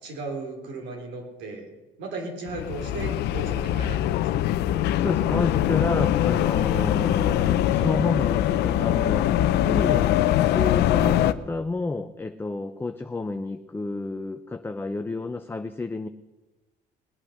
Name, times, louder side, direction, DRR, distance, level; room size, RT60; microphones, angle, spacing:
voice 1, 0.0-1.7 2.0-4.4 7.0-7.1 11.1-11.2, right 3 dB, 85° right, 1 dB, 3.5 m, -36 dB
sound 1, 2.5-11.3, left 12 dB, 80° left, 0.6 m, -22 dB
voice 2, 5.0-9.3 9.6-10.1 10.5-16.1, left 2 dB, 15° left, 7 dB, 0.6 m, -30 dB
19.5 x 8.8 x 6.5 m, 1.2 s
cardioid pair, 110°, 17 cm